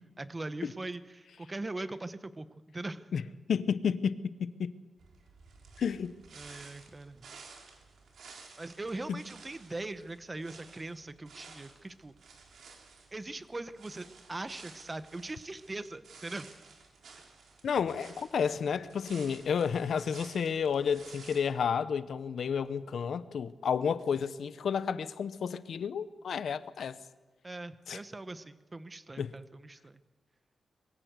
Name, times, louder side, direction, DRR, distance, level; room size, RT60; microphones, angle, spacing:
voice 1, 0.2-2.5 2.7-3.1 6.3-7.3 8.6-12.1 13.1-16.5 27.4-30.0, right 2 dB, 20° right, 0.9 m, -41 dB
voice 2, 3.5-4.7 5.8-6.1 9.1-9.2 17.6-27.0 27.9-28.0 29.2-29.3, left 7 dB, 70° left, 0.8 m, -31 dB
sound 1, 5.0-21.4, right 4 dB, 80° right, 3.5 m, -54 dB
22.5 x 15.5 x 8.1 m
wide cardioid pair, 140°, 0 cm